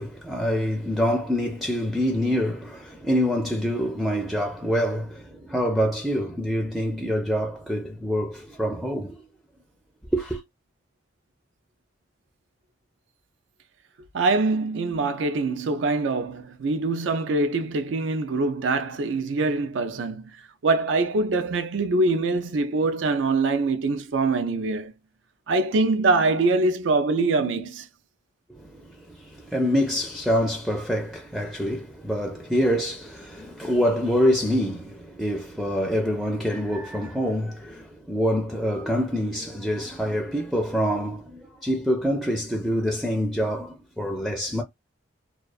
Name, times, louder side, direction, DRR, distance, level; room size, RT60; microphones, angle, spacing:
voice 1, 0.0-9.2 10.1-10.4 28.5-44.6, equal, ahead, 0.4 m, -26 dB
voice 2, 14.1-20.2 20.6-24.9 25.5-27.9, right 3 dB, 80° right, 0.4 m, -24 dB
2.3 x 2.3 x 2.3 m
head